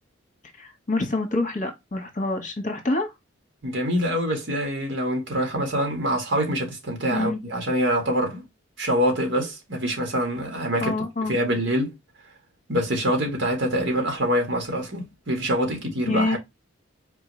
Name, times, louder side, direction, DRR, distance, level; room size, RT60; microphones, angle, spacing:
voice 1, 0.6-3.1 7.1-7.4 10.8-11.3 16.1-16.4, left 2 dB, 40° left, 1.3 m, -26 dB
voice 2, 3.6-8.4 8.8-10.9 11.3-11.9 12.7-16.4, equal, 65° right, 1.8 m, -25 dB
4.6 x 3.2 x 3.1 m
head